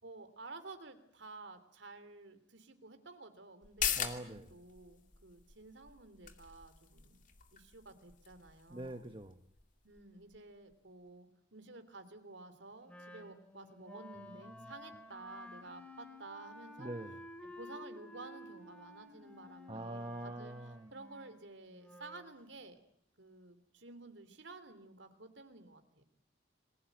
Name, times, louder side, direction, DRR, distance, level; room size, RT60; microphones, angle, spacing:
voice 1, 0.0-7.2 7.5-9.1 9.8-16.9 17.6-22.8 23.2-26.0, right 3 dB, 75° right, 9 dB, 3.2 m, -52 dB
sound 1, 3.6-10.7 11.1-11.2, left 9 dB, 45° left, 2.5 m, -42 dB
voice 2, 4.0-4.5 8.7-9.4 14.3-14.7 16.8-17.2 19.7-20.9, right 1 dB, 25° right, 8 dB, 1.1 m, -44 dB
Wind instrument woodwind instrument, 12.9-22.3, left 1 dB, 5° left, 2.6 m, -53 dB
28.0 x 21.0 x 9.3 m, 0.71 s
head